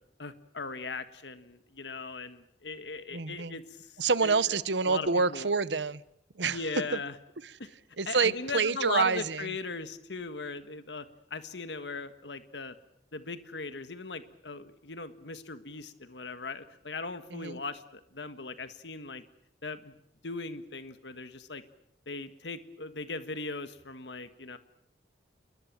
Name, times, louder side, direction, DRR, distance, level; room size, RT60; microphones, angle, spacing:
voice 1, 0.2-4.3 4.8-5.5 6.5-7.1 7.6-7.7 8.1-12.7 13.1-19.2 19.6-19.9 20.2-21.6 22.1-24.6, left 4 dB, 85° left, 11 dB, 1.6 m, -39 dB
voice 2, 3.1-3.6 4.0-6.0 6.3-6.6 6.9-7.0 7.4-7.5 8.0-9.5 17.3-17.6, right 4 dB, 90° right, 18 dB, 1.0 m, -27 dB
29.0 x 22.0 x 7.4 m, 0.74 s
head